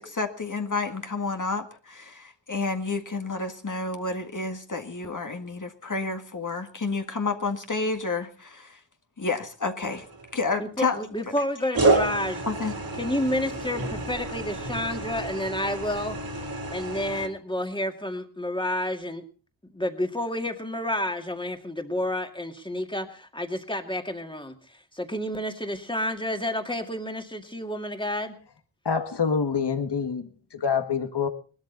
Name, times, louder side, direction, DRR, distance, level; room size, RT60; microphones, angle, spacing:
voice 1, 0.0-8.8 9.2-10.1 10.3-11.1 12.5-12.7, left 3 dB, 40° left, 5 dB, 1.8 m, -30 dB
sound 1, 9.8-10.5 11.7-17.3, right 3 dB, 50° right, 2.6 m, -29 dB
voice 2, 10.6-12.4 13.0-16.2 16.7-19.2 19.7-24.5 24.9-28.4, left 1 dB, 10° left, 6 dB, 2.1 m, -30 dB
voice 3, 28.9-31.3, left 6 dB, 60° left, 8 dB, 1.8 m, -26 dB
21.0 x 13.0 x 4.0 m, 0.38 s
wide cardioid pair, 105°, 46 cm